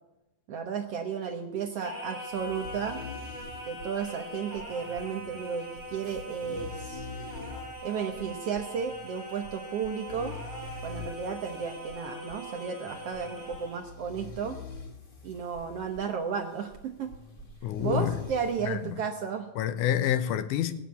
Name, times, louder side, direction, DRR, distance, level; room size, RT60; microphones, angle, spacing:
voice 1, 0.5-3.0 3.6-7.0 7.8-10.4 10.8-14.6 15.2-17.1 17.8-19.5, right 6 dB, 65° right, 1.6 m, -33 dB
Singing, 1.8-13.9, equal, 15° left, 3.9 m, -42 dB
sound 1, 2.3-19.0, left 3 dB, 50° left, 0.6 m, -45 dB
voice 2, 17.6-18.1 18.7-18.8 19.6-20.7, left 11 dB, 80° left, 2.3 m, -27 dB
19.0 x 7.6 x 8.2 m
omnidirectional pair, 3.7 m